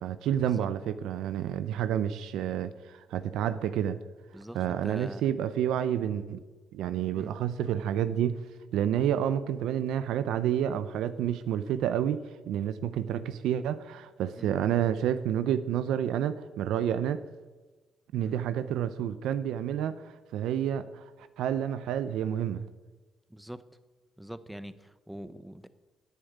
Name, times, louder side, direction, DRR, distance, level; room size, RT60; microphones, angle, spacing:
voice 1, 0.0-4.0 4.5-6.4 6.7-8.4 8.7-12.2 12.5-17.2 18.1-21.1 21.4-22.6, right 10 dB, 85° right, 12 dB, 0.6 m, -29 dB
voice 2, 4.3-5.2 7.1-7.3 14.4-14.5 18.2-18.3 23.3-23.6 24.2-25.7, equal, 5° right, 14 dB, 0.8 m, -43 dB
10.5 x 8.1 x 9.2 m, 1.3 s
cardioid pair, 90°, 0 cm